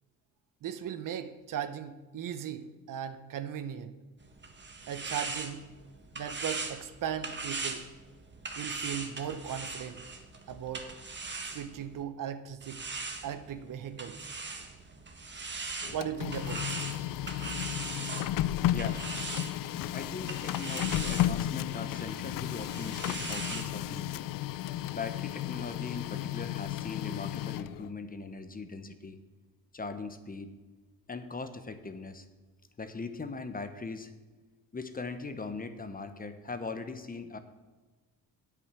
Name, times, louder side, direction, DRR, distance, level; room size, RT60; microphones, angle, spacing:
voice 1, 0.6-3.9 4.8-5.6 6.1-7.8 8.6-10.0 10.5-10.9 11.4-12.8 13.2-14.3 15.9-16.7, right 9 dB, 60° right, 11 dB, 0.9 m, -37 dB
sound 1, 4.2-12.0 12.6-23.7, right 3 dB, 30° right, 1.6 m, -40 dB
Printer, 15.8-27.9, left 13 dB, 65° left, 0.5 m, -33 dB
voice 2, 18.7-19.0 19.9-24.2 24.8-29.2 29.7-30.5 31.1-32.3 32.8-34.1 34.7-37.4, left 4 dB, 25° left, 9 dB, 1.0 m, -40 dB
8.6 x 8.6 x 6.1 m, 1.3 s
cardioid pair, 80°, 36 cm